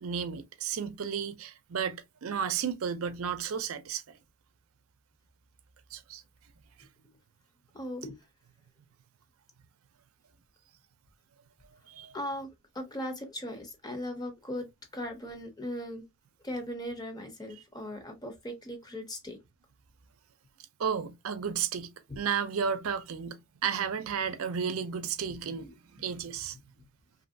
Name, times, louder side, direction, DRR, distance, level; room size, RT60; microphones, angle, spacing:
voice 1, 0.0-4.2 5.9-6.2 11.9-12.2 20.8-26.6, right 7 dB, 80° right, 0.5 m, -33 dB
voice 2, 7.7-8.2 12.1-14.7 14.9-16.1 16.4-19.4, left 1 dB, 20° left, 0.6 m, -38 dB
3.0 x 2.6 x 2.6 m
head